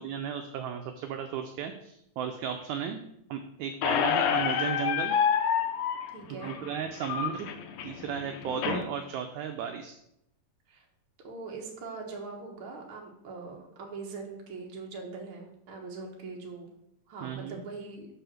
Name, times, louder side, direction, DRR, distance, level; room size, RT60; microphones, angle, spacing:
voice 1, 0.0-5.2 6.4-7.5 7.8-10.0 17.2-17.6, right 8 dB, 80° right, 5 dB, 1.8 m, -35 dB
Squeak, 3.8-8.8, left 8 dB, 85° left, 1.5 m, -28 dB
voice 2, 6.1-6.6 8.5-8.6 10.7-10.9 11.2-16.7 17.1-18.1, right 4 dB, 50° right, 0 dB, 1.7 m, -42 dB
5.6 x 4.8 x 6.4 m, 0.79 s
omnidirectional pair, 3.7 m